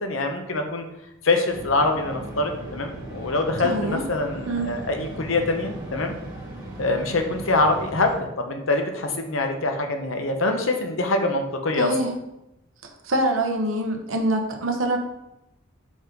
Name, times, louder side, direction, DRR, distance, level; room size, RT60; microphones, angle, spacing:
voice 1, 0.0-0.8 1.2-6.1 6.8-11.9, left 2 dB, 70° left, 4 dB, 0.9 m, -24 dB
sound 1, 1.5-8.2, right 1 dB, 20° right, 2.4 m, -37 dB
voice 2, 3.6-4.0 4.5-4.7 11.8-12.1 13.0-15.0, right 1 dB, 70° right, 3 dB, 1.0 m, -24 dB
5.1 x 3.8 x 5.3 m, 0.88 s
head